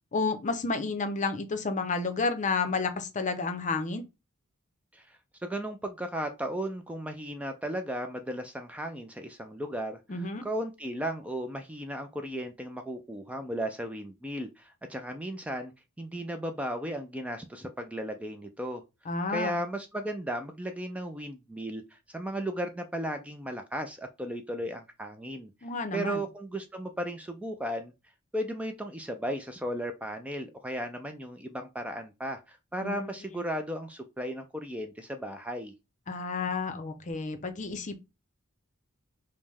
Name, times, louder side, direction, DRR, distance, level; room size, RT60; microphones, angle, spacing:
voice 1, 0.1-4.0 10.1-10.4 19.1-19.6 25.6-26.2 32.8-33.1 36.1-38.0, left 4 dB, 35° left, 0.6 m, -31 dB
voice 2, 4.9-15.7 16.0-18.8 19.3-25.5 25.9-27.9 28.3-35.7, right 1 dB, 5° right, 0.3 m, -35 dB
5.2 x 2.1 x 3.4 m
head